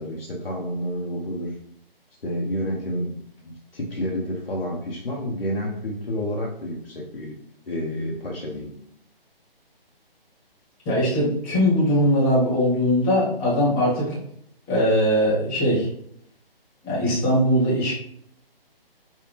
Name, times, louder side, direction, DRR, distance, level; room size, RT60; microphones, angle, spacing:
voice 1, 0.0-1.5 2.2-3.2 3.4-7.4 7.7-8.7, equal, 70° left, -3 dB, 1.0 m, -29 dB
voice 2, 10.9-14.2 14.7-15.9 16.8-17.9, equal, 5° left, -9 dB, 0.6 m, -20 dB
5.5 x 2.2 x 3.3 m, 0.69 s
figure-of-eight pair, 140°, 30 cm